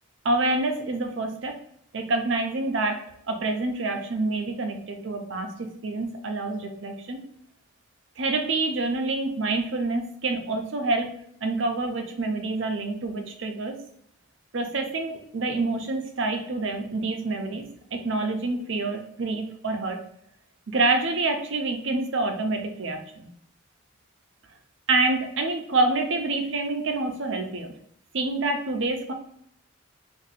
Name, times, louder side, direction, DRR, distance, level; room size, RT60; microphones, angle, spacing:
voice 1, 0.2-1.6 1.9-7.2 8.2-11.1 11.4-13.8 14.5-17.6 17.9-20.0 20.7-23.3 24.9-27.7 28.1-29.1, right 2 dB, 65° right, 5 dB, 0.6 m, -27 dB
2.6 x 2.6 x 4.0 m, 0.69 s
head